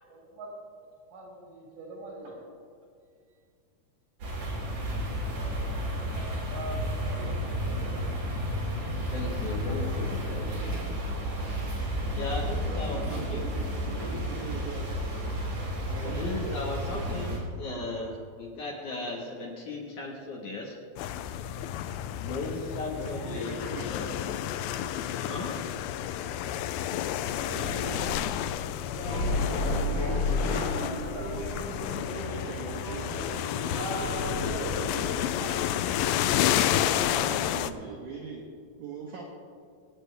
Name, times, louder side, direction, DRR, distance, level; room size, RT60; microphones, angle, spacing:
voice 1, 0.1-0.6 1.1-2.4 5.4-8.4 28.9-29.2 29.5-30.3 30.7-31.4 33.6-35.7, right 1 dB, 80° right, -3 dB, 5.4 m, -41 dB
sound 1, 4.2-17.4, equal, 45° right, 3.7 m, -32 dB
voice 2, 9.1-10.9 12.2-13.4 16.0-20.8 22.2-24.3 25.2-25.6, left 2 dB, 55° left, -2 dB, 2.5 m, -36 dB
voice 3, 12.1-14.9 15.9-16.5 17.8-17.9 23.0-24.2 27.4-28.3 28.6-28.7 30.2-30.7 32.1-33.3 37.1-38.4 38.8-39.3, right 4 dB, 65° right, -1 dB, 2.0 m, -40 dB
sound 2, 21.0-37.7, left 11 dB, 90° left, 2.1 m, -30 dB
sound 3, 29.0-37.6, left 1 dB, 35° left, 4.6 m, -34 dB
24.5 x 9.0 x 3.4 m, 2.2 s
omnidirectional pair, 4.9 m